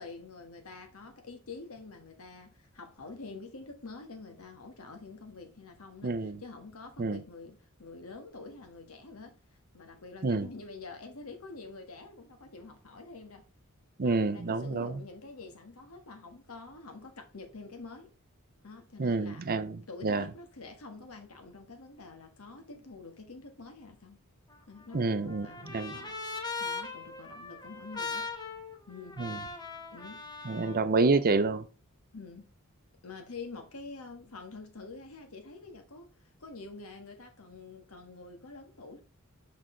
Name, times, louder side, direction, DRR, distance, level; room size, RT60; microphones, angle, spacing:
voice 1, 0.0-9.4 9.7-13.5 14.0-18.1 18.6-19.4 19.9-24.2 24.7-26.2 26.6-28.3 28.9-29.2 29.9-30.5 32.1-32.5 33.0-39.0, left 3 dB, 85° left, 1.6 m, -47 dB
voice 2, 6.0-6.4 7.0-7.2 10.2-10.5 14.0-15.0 19.0-20.3 24.9-25.5 25.7-26.0 29.2-29.4 30.5-31.7, right 3 dB, 45° right, 0.6 m, -28 dB
Trumpet, 24.5-30.8, left 4 dB, 20° left, 1.0 m, -40 dB
6.5 x 5.1 x 3.8 m
head